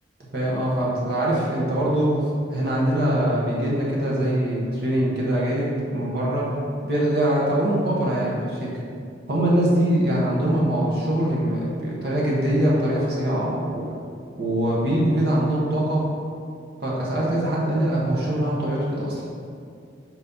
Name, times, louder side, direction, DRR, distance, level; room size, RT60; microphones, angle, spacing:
voice 1, 0.3-2.2 2.5-6.5 6.8-8.7 9.3-13.8 14.4-16.1 16.8-19.2, right 1 dB, 55° right, -5 dB, 1.4 m, -23 dB
4.3 x 4.2 x 5.4 m, 2.4 s
head